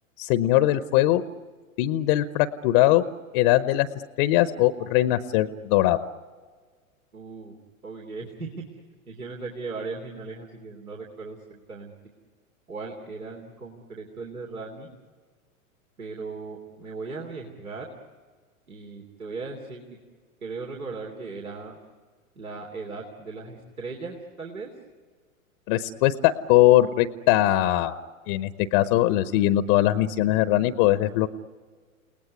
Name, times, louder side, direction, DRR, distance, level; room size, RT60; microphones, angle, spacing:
voice 1, 0.2-1.2 1.8-3.0 3.3-3.9 4.2-6.0 25.7-28.0 28.3-31.3, left 14 dB, 35° left, 14 dB, 0.9 m, -21 dB
voice 2, 7.1-7.6 7.8-8.5 9.1-11.9 12.7-14.9 16.0-17.9 18.7-19.8 20.4-21.8 22.4-24.7, right 4 dB, 80° right, 0 dB, 3.3 m, -37 dB
29.5 x 19.0 x 9.7 m, 1.5 s
figure-of-eight pair, 100°, 42 cm